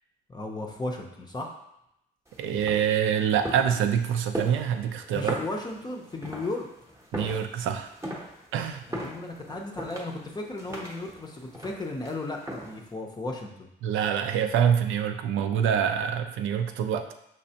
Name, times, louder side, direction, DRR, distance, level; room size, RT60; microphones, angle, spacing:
voice 1, 0.3-1.6 5.1-6.7 8.9-13.7, left 2 dB, 20° left, 1 dB, 0.6 m, -35 dB
sound 1, 2.3-12.9, equal, 15° right, 0.8 m, -39 dB
voice 2, 2.4-5.3 7.1-7.9 8.5-8.8 13.8-17.1, right 8 dB, 85° right, 7 dB, 0.5 m, -25 dB
5.2 x 3.2 x 2.8 m, 0.81 s
cardioid pair, 90°, 20 cm